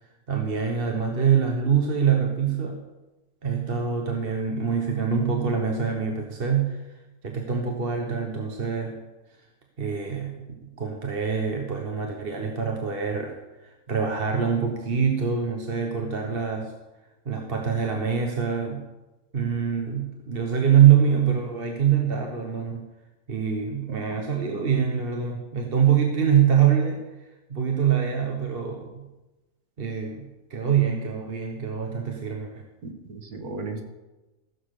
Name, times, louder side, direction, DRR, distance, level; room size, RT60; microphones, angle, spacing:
voice 1, 0.3-2.8 3.4-6.8 7.2-9.0 9.8-10.5 10.8-16.7 17.2-18.8 19.3-22.9 23.3-27.0 27.5-29.1 29.8-32.6, right 7 dB, 40° right, 2 dB, 1.3 m, -24 dB
voice 2, 23.9-24.2 24.5-24.6 32.8-33.8, right 3 dB, 85° right, 4 dB, 2.1 m, -36 dB
15.5 x 7.2 x 6.6 m, 1.1 s
omnidirectional pair, 1.5 m